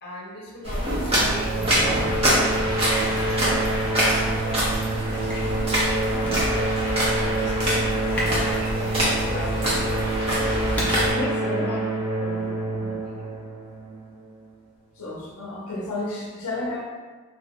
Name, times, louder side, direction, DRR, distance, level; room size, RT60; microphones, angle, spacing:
voice 1, 0.0-10.4 11.1-11.8 13.0-13.3, equal, 50° left, -5 dB, 0.8 m, -38 dB
sound 1, 0.6-11.1, equal, 25° right, 0.7 m, -25 dB
sound 2, 1.1-14.4, right 2 dB, 60° right, 0.7 m, -27 dB
sound 3, 5.2-12.4, equal, 5° left, 0.5 m, -38 dB
voice 2, 11.1-11.7 12.2-13.0 15.0-16.8, left 2 dB, 80° left, -3 dB, 0.5 m, -32 dB
3.1 x 2.5 x 2.9 m, 1.4 s
head